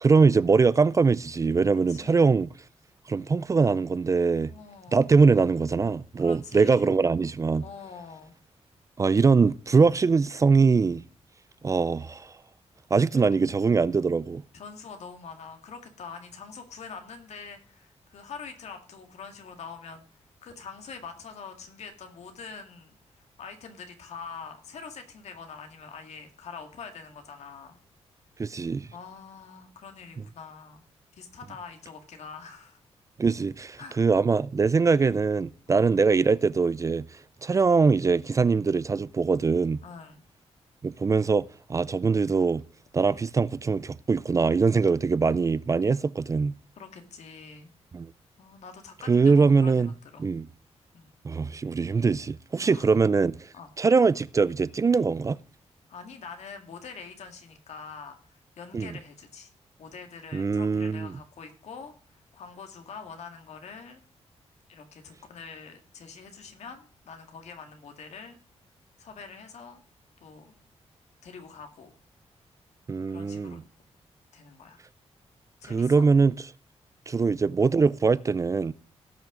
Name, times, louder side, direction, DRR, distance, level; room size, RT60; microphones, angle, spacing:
voice 1, 0.0-2.5 3.1-4.5 4.9-7.6 9.0-11.0 11.6-12.3 12.9-14.4 28.4-28.9 33.2-37.0 37.4-39.8 40.8-42.6 42.9-46.5 47.9-48.1 49.1-49.9 50.2-50.5 51.2-53.5 53.8-55.4 58.7-58.9 60.3-61.1 72.9-73.6 75.6-76.3 77.1-78.7, right 4 dB, 30° right, 0.4 m, -22 dB
voice 2, 1.9-2.4 4.5-5.1 6.2-6.9 7.6-8.3 14.5-27.8 28.9-30.8 31.2-32.8 33.8-34.0 35.7-35.9 39.8-40.2 46.7-47.7 48.4-50.3 50.9-51.1 52.6-52.9 53.5-53.7 55.9-59.5 59.8-64.0 64.7-68.4 69.0-69.8 70.2-70.6 71.2-71.9 73.1-73.6 74.3-74.8 75.6-76.1 77.2-77.3, left 5 dB, 75° left, 2.0 m, -44 dB
17.5 x 5.9 x 3.8 m
wide cardioid pair, 130°, 11 cm